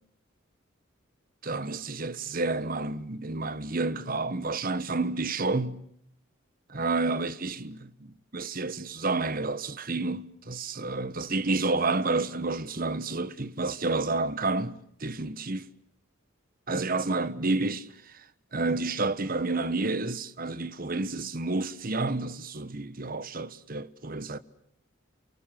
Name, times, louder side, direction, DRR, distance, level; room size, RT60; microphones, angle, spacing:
voice 1, 1.4-5.8 6.7-15.7 16.7-18.3 18.5-24.4, right 3 dB, 45° right, 1.2 m, -30 dB
28.5 x 24.0 x 7.6 m
head